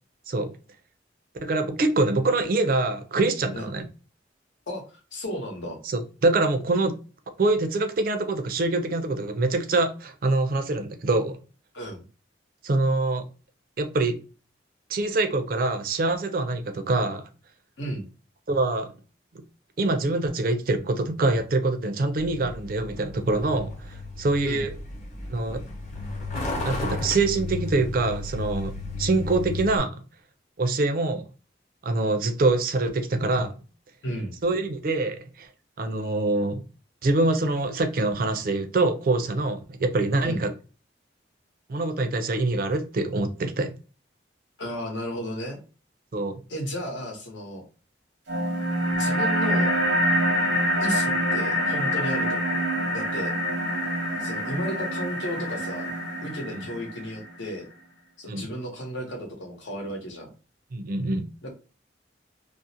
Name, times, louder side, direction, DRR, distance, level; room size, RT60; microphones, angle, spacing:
voice 1, 1.4-3.9 5.9-6.9 7.4-11.4 12.6-13.2 13.8-14.2 14.9-17.3 18.5-18.9 19.8-24.7 25.3-25.6 26.6-28.7 29.0-29.9 30.6-31.2 31.8-33.5 34.4-35.5 35.8-36.6 37.0-40.5 41.7-43.7 46.1-46.4 56.5-56.7 58.3-58.5 60.7-61.2, right 2 dB, 50° right, 0.4 m, -25 dB
voice 2, 4.7-5.8 11.7-12.0 17.8-18.1 24.4-24.7 34.0-34.3 40.2-40.4 44.6-45.6 46.5-47.6 48.9-49.7 50.8-52.7 52.9-53.3 54.2-55.9 56.2-57.7 58.2-60.3 61.4-61.5, equal, 85° left, 0.9 m, -33 dB
Truck, 22.2-29.8, left 2 dB, 40° left, 0.7 m, -34 dB
sound 1, 48.3-57.3, equal, 85° right, 0.8 m, -26 dB
2.4 x 2.0 x 2.6 m
head